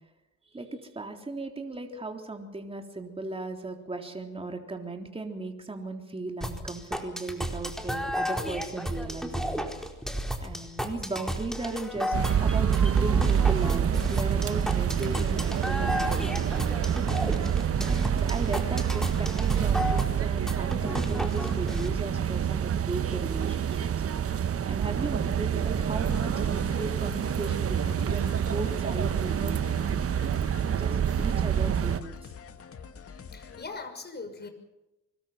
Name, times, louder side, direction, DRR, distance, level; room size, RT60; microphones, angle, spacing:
voice 1, 0.5-9.6 10.4-12.2 12.4-17.0 17.8-23.9 24.7-29.6 30.7-32.3, right 2 dB, 20° right, 3 dB, 3.7 m, -37 dB
sound 1, 6.4-21.9, equal, ahead, 4.4 m, -33 dB
sound 2, 12.1-32.0, right 8 dB, 50° right, 1.3 m, -27 dB
sound 3, 26.1-33.6, left 6 dB, 50° left, 2.3 m, -45 dB
voice 2, 29.7-30.6 33.3-34.5, left 3 dB, 35° left, 7 dB, 6.4 m, -42 dB
25.0 x 22.5 x 5.9 m, 0.94 s
cardioid pair, 90°, 30 cm